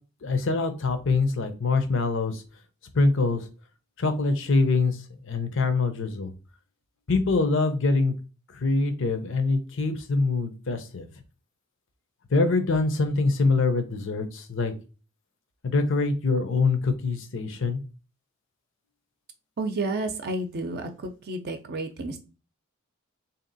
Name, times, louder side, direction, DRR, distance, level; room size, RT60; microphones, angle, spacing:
voice 1, 0.2-2.4 2.9-3.4 4.0-5.0 5.2-6.3 7.1-8.1 8.5-11.1 12.3-14.7 15.6-17.8, left 3 dB, 65° left, 8 dB, 0.7 m, -24 dB
voice 2, 19.6-22.2, right 2 dB, 50° right, 6 dB, 0.6 m, -31 dB
3.6 x 2.9 x 3.9 m, 0.33 s
head